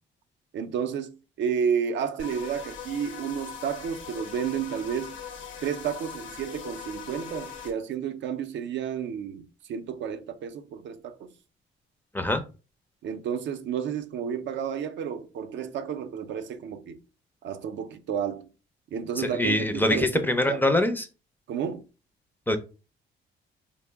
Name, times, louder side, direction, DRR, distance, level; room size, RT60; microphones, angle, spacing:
voice 1, 0.5-5.2 5.6-11.3 13.0-17.0 17.4-18.5 18.9-20.7 21.5-21.8, right 7 dB, 70° right, 0.5 m, -31 dB
sound 1, 2.2-7.7, left 7 dB, 75° left, 0.8 m, -41 dB
voice 2, 19.2-21.0 22.5-22.6, left 1 dB, 10° left, 0.4 m, -24 dB
3.6 x 2.0 x 3.4 m
cardioid pair, 90°, 20 cm